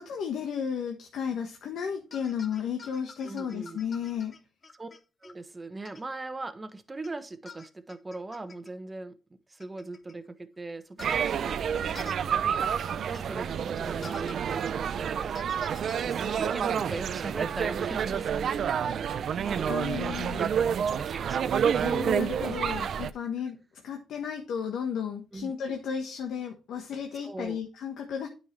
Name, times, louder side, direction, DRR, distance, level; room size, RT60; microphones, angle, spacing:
voice 1, 0.0-4.3 19.6-20.4 21.8-23.6 23.8-28.3, left 7 dB, 75° left, 1.3 m, -33 dB
sound 1, 2.1-5.3 5.8-6.0 7.0-7.1 7.5-8.7 9.6-10.1 11.0-11.2 11.9-12.2 13.1-13.2 14.0-14.4 15.3-16.1, left 4 dB, 35° left, 0.8 m, -47 dB
voice 2, 3.2-3.8 4.7-4.9 5.2-9.2 9.5-15.8 16.0-21.6 25.3-25.5 27.2-27.6, right 2 dB, 20° right, 1.1 m, -40 dB
sound 2, 11.0-23.1, right 8 dB, 60° right, 0.5 m, -29 dB
9.5 x 5.6 x 3.3 m
cardioid pair, 90°, 0 cm